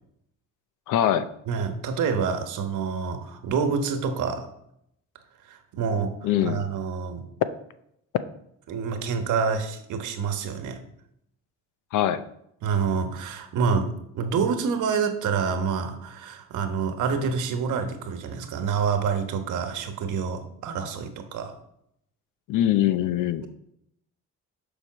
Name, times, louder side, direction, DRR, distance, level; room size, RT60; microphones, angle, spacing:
voice 1, 0.9-1.3 6.2-6.6 11.9-12.2 22.5-23.4, left 11 dB, 85° left, 13 dB, 0.6 m, -23 dB
voice 2, 1.5-4.5 5.5-7.2 8.7-10.8 12.6-21.6, right 5 dB, 80° right, 7 dB, 1.2 m, -27 dB
7.1 x 5.0 x 6.1 m, 0.76 s
cardioid pair, 90°, 30 cm